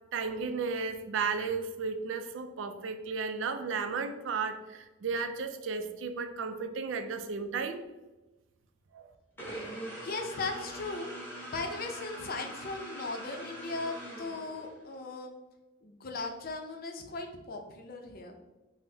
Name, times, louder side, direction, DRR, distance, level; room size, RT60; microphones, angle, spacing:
voice 1, 0.1-7.8 8.9-9.1, right 5 dB, 85° right, 8 dB, 0.4 m, -34 dB
sound 1, 9.4-15.0, right 1 dB, 10° left, 1.0 m, -43 dB
voice 2, 10.0-11.1 11.5-15.3 15.8-18.4, left 3 dB, 50° left, 3 dB, 0.5 m, -38 dB
5.5 x 2.1 x 2.7 m, 1.1 s
head